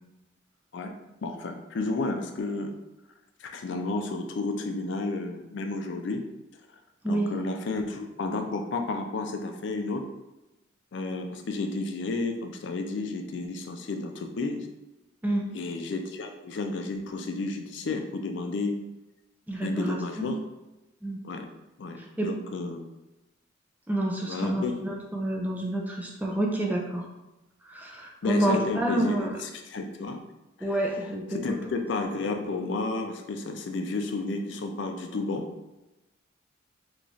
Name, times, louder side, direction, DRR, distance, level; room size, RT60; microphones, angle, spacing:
voice 1, 1.2-2.7 3.4-6.2 7.1-10.0 10.9-14.7 15.5-18.8 19.6-20.4 21.2-21.5 21.8-22.8 24.2-24.7 28.2-30.2 30.6-30.8 31.3-35.4, left 3 dB, 65° left, 5 dB, 0.4 m, -32 dB
voice 2, 19.5-20.3 21.0-21.2 22.0-22.3 23.9-27.1 27.7-29.4 30.6-31.6, right 1 dB, 10° right, -1 dB, 0.4 m, -28 dB
3.0 x 2.3 x 3.9 m, 0.99 s
head